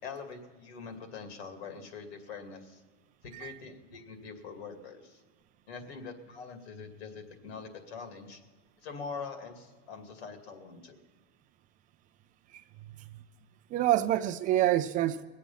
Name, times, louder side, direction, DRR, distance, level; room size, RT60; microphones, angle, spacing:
voice 1, 0.0-2.8 3.2-5.2 5.7-8.4 8.8-11.0, left 5 dB, 85° left, 2.5 m, -43 dB
voice 2, 13.7-15.2, right 13 dB, 25° right, 0.4 m, -27 dB
22.5 x 8.4 x 5.6 m
supercardioid pair, 155°, 31 cm